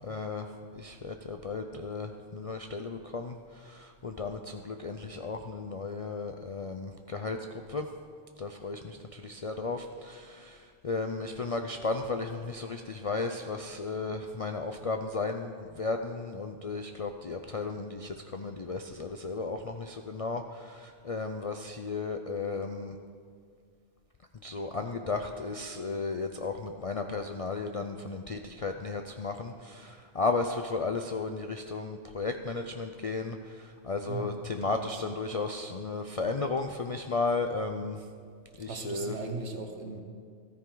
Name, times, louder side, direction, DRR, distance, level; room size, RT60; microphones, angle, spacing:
voice 1, 0.0-7.9 8.4-23.0 24.4-38.1 38.6-39.1, left 3 dB, 45° left, 5 dB, 0.4 m, -34 dB
voice 2, 34.6-34.9 38.6-40.0, right 3 dB, 65° right, 4 dB, 1.4 m, -38 dB
14.5 x 13.0 x 3.9 m, 2.1 s
omnidirectional pair, 1.3 m